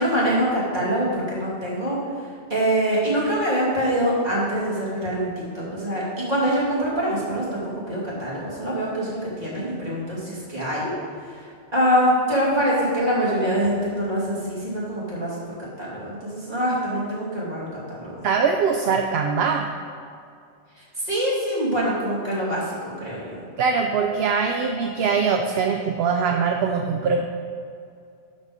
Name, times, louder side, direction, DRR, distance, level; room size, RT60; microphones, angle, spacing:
voice 1, 0.0-10.9 11.2-15.4 15.8-18.2 20.8-23.4, equal, 35° right, -8 dB, 2.6 m, -24 dB
voice 2, 18.2-19.7 23.6-27.2, right 5 dB, 65° right, 4 dB, 0.8 m, -22 dB
12.0 x 4.2 x 5.1 m, 2.4 s
omnidirectional pair, 1.2 m